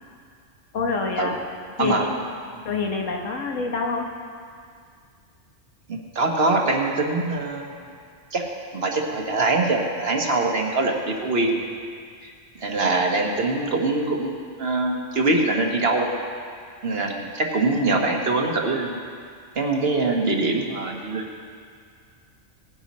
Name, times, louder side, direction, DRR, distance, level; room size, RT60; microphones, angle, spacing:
voice 1, 0.7-1.3 1.8-2.1 2.6-4.1, left 4 dB, 90° left, 0 dB, 1.7 m, -26 dB
voice 2, 5.9-7.7 8.3-8.4 8.7-11.6 12.2-12.3 12.6-16.1 16.8-19.0 19.5-21.2, right 2 dB, 55° right, 1 dB, 1.4 m, -23 dB
18.0 x 9.9 x 4.2 m, 2.2 s
omnidirectional pair, 1.3 m